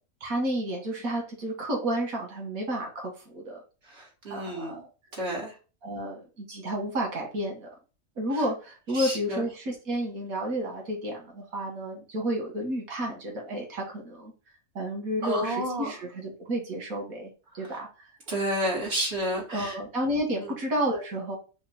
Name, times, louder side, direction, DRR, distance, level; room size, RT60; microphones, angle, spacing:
voice 1, 0.2-3.6 4.3-4.9 5.8-7.7 8.2-14.3 14.8-17.3 17.5-18.1 19.5-21.4, right 1 dB, 85° right, 0 dB, 2.1 m, -31 dB
voice 2, 3.9-4.8 5.2-5.5 8.9-9.4 15.2-15.9 18.3-19.8 20.4-20.5, equal, 50° right, -3 dB, 2.2 m, -30 dB
5.1 x 2.5 x 4.1 m, 0.33 s
omnidirectional pair, 1.4 m